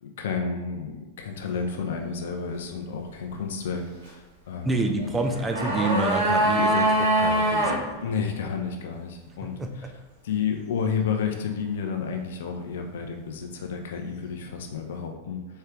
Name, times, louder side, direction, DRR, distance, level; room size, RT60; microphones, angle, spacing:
voice 1, 0.0-4.7 5.0-5.2 8.0-9.9 10.2-15.6, left 6 dB, 60° left, 4 dB, 0.6 m, -31 dB
voice 2, 4.6-7.9 9.4-9.9, right 2 dB, 10° right, 4 dB, 0.4 m, -28 dB
sound 1, 5.2-7.8 8.1-8.2, right 1 dB, 80° right, 1.5 m, -23 dB
4.5 x 3.3 x 3.6 m, 1.1 s
figure-of-eight pair, 90°, 0 cm